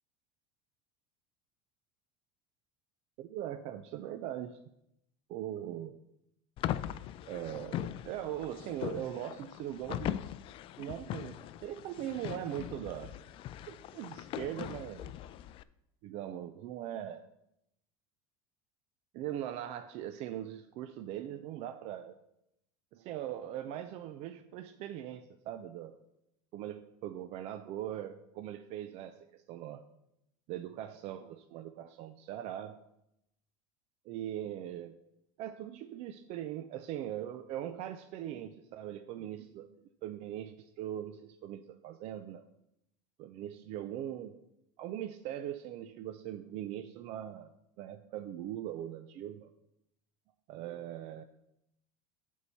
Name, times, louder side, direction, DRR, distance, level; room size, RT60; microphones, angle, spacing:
voice 1, 3.2-4.6 5.3-6.0 7.3-10.3 10.8-13.2 13.7-15.1 16.0-17.3 19.1-22.2 22.9-26.0 26.5-29.8 30.5-32.8 34.1-35.0 35.4-42.4 43.2-44.4 44.8-47.5 47.8-49.5 50.5-51.2, right 11 dB, 55° right, 9 dB, 0.5 m, -41 dB
sound 1, 6.6-15.6, left 12 dB, 45° left, 0.4 m, -40 dB
6.9 x 4.6 x 6.9 m, 0.81 s
supercardioid pair, 105°, 12 cm